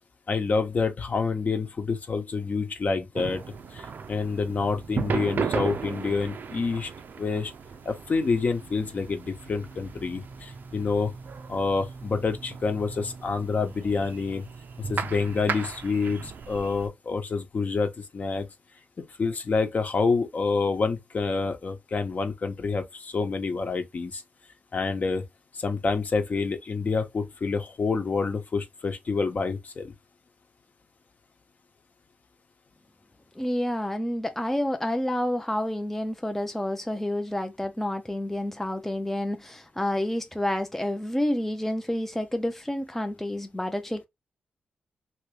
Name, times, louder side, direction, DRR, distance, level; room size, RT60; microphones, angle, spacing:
voice 1, 0.3-3.4 3.7-6.9 7.2-7.5 7.8-11.1 11.5-14.4 14.9-18.5 19.2-24.2 24.7-25.2 25.5-29.9, left 4 dB, 50° left, 1.0 m, -27 dB
sound 1, 3.1-16.9, right 5 dB, 65° right, 0.6 m, -36 dB
voice 2, 33.4-44.1, left 1 dB, 5° left, 0.6 m, -29 dB
3.0 x 2.9 x 3.2 m
cardioid pair, 70°, 3 cm